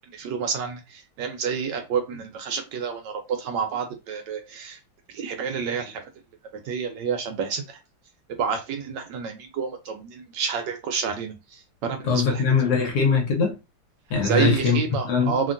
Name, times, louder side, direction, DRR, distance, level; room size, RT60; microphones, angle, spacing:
voice 1, 0.1-4.8 5.1-6.0 6.5-7.8 8.4-12.4 12.8-12.9 14.2-15.5, right 6 dB, 75° right, 1.1 m, -29 dB
voice 2, 12.0-13.6 14.1-15.3, left 5 dB, 65° left, 1.2 m, -22 dB
2.8 x 2.7 x 2.5 m
omnidirectional pair, 2.2 m